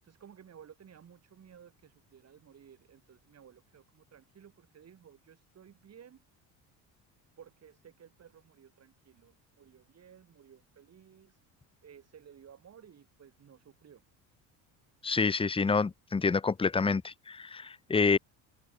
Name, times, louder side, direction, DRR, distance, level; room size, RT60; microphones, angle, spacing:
voice 1, 0.0-6.2 7.4-11.4 11.8-14.0, right 8 dB, 40° right, 7.7 m, -56 dB
voice 2, 15.0-18.2, left 4 dB, 15° left, 0.8 m, -28 dB
open air
cardioid pair, 120°, 39 cm